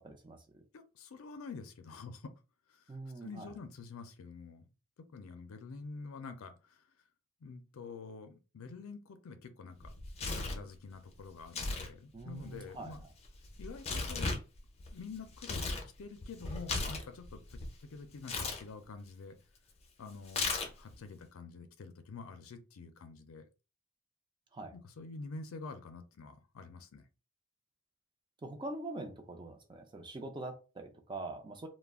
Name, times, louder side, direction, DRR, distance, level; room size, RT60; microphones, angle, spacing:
voice 1, 0.0-0.6 2.9-3.5 12.1-12.9 24.5-24.8 28.4-31.7, right 2 dB, 20° right, 0.4 m, -44 dB
voice 2, 0.7-2.3 2.7-4.7 5.1-6.8 7.4-9.9 10.2-13.0 13.6-14.4 14.9-15.7 16.0-19.4 20.0-23.4 24.7-27.0, left 4 dB, 85° left, 0.4 m, -47 dB
Tearing, 9.8-10.7 11.4-11.9 12.2-15.9 16.2-17.7 18.2-18.6 20.3-20.9, left 3 dB, 30° left, 0.5 m, -36 dB
2.3 x 2.0 x 3.4 m
head